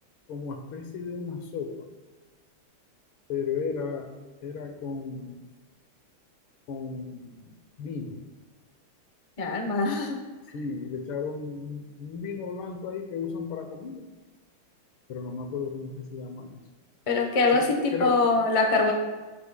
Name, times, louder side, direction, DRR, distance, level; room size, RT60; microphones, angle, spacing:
voice 1, 0.3-1.9 3.3-4.1 4.4-5.4 6.7-8.2 10.5-14.1 15.1-16.6 17.5-18.2, left 5 dB, 80° left, 6 dB, 1.7 m, -34 dB
voice 2, 9.4-10.2 17.1-18.9, left 3 dB, 45° left, 2 dB, 0.4 m, -23 dB
12.0 x 8.4 x 2.2 m, 1.2 s
omnidirectional pair, 2.3 m